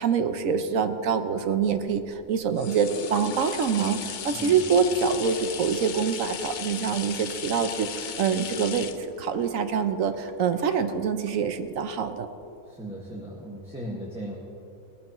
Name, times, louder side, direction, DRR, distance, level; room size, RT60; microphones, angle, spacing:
voice 1, 0.0-12.3, right 6 dB, 70° right, 9 dB, 1.1 m, -25 dB
sound 1, 1.6-11.3 11.8-11.9, left 8 dB, 75° left, 0.4 m, -37 dB
voice 2, 4.3-4.6 12.7-14.4, right 1 dB, 5° right, -5 dB, 1.6 m, -37 dB
18.5 x 14.0 x 3.0 m, 2.8 s
omnidirectional pair, 1.5 m